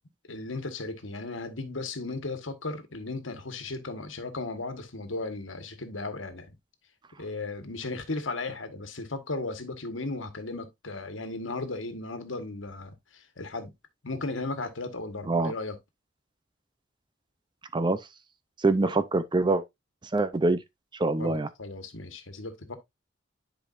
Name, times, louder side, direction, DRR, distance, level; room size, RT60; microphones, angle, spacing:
voice 1, 0.3-6.5 7.2-13.7 14.0-15.8 21.2-22.8, left 3 dB, 80° left, 1.5 m, -36 dB
voice 2, 18.6-19.6 20.1-20.6 21.0-21.5, right 3 dB, 25° right, 0.6 m, -24 dB
10.5 x 5.1 x 2.6 m
head